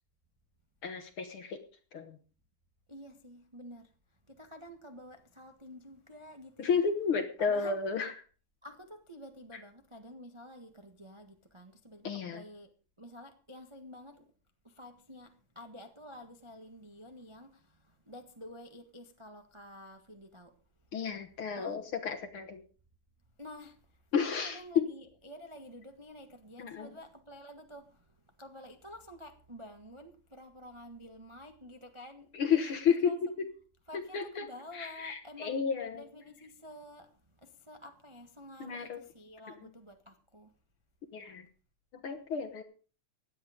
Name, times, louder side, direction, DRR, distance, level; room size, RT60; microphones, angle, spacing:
voice 1, 0.8-1.6 1.9-2.2 6.6-8.1 12.0-12.4 20.9-22.6 24.1-24.9 26.6-27.0 32.3-33.5 34.1-34.5 34.7-36.0 38.6-39.0 39.6-39.7 41.1-41.5 41.9-42.6, left 6 dB, 55° left, 1.6 m, -32 dB
voice 2, 2.9-3.9 4.3-6.8 7.4-7.8 8.6-12.7 13.0-14.2 14.6-20.5 21.5-21.8 23.4-23.8 24.2-28.1 28.4-32.3 33.0-33.2 33.9-35.6 35.9-37.1 37.4-40.5, left 1 dB, 30° right, 0.5 m, -50 dB
17.0 x 10.5 x 5.1 m
omnidirectional pair, 3.6 m